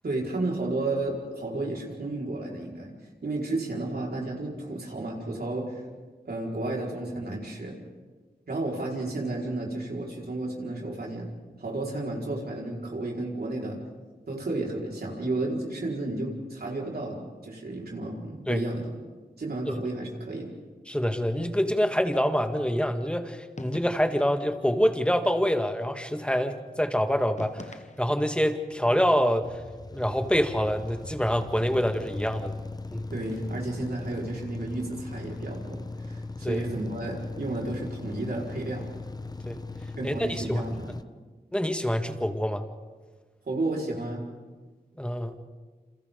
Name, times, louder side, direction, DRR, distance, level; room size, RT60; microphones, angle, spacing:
voice 1, 0.0-2.9 3.2-5.8 6.2-7.8 8.5-11.3 11.6-13.8 14.3-18.9 19.4-20.5 33.1-38.9 40.0-40.9 43.5-44.2, right 2 dB, 70° right, -2 dB, 4.8 m, -32 dB
voice 2, 20.9-27.7 28.0-29.5 29.9-32.5 32.9-33.0 36.4-36.7 39.5-39.6 40.0-40.6 41.5-42.6 45.0-45.4, equal, 5° left, 6 dB, 1.8 m, -26 dB
sound 1, 23.6-24.3 27.4-28.4, left 3 dB, 45° left, 1.2 m, -44 dB
sound 2, 29.4-41.0, left 3 dB, 25° left, 0.8 m, -39 dB
28.5 x 28.0 x 3.9 m, 1.4 s
wide cardioid pair, 65°, 17 cm